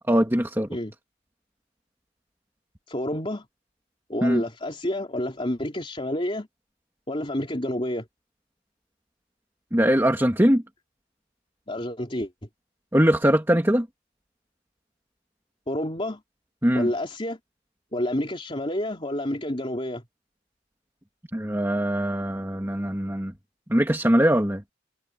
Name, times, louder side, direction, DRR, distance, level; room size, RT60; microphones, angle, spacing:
voice 1, 0.1-0.7 4.2-4.4 9.7-10.6 12.9-13.9 16.6-16.9 21.3-23.3 23.7-24.6, equal, 15° right, 2.2 m, -21 dB
voice 2, 2.9-3.5 4.1-6.5 7.1-8.1 11.7-12.3 15.7-16.2 16.7-17.4 17.9-20.0, left 1 dB, 30° left, 3.6 m, -29 dB
head